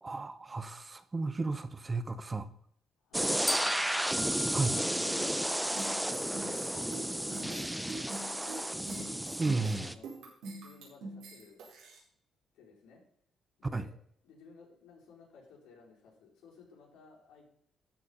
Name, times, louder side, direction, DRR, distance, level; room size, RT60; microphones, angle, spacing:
voice 1, 0.0-2.5 4.5-4.8 9.4-10.0 13.7-13.9, right 3 dB, 25° right, 12 dB, 0.9 m, -33 dB
voice 2, 3.0-4.1 5.0-7.8 8.1-8.8 9.8-11.6 12.5-13.0 13.6-13.9 14.2-17.5, left 5 dB, 90° left, -3 dB, 4.0 m, -54 dB
sound 1, 3.1-9.9, right 1 dB, 5° right, 0.6 m, -33 dB
sound 2, 3.5-5.7, left 2 dB, 25° left, 2.1 m, -39 dB
sound 3, 5.7-12.0, right 2 dB, 85° right, 4.3 m, -44 dB
13.5 x 5.0 x 5.4 m, 0.65 s
cardioid pair, 90°, 0 cm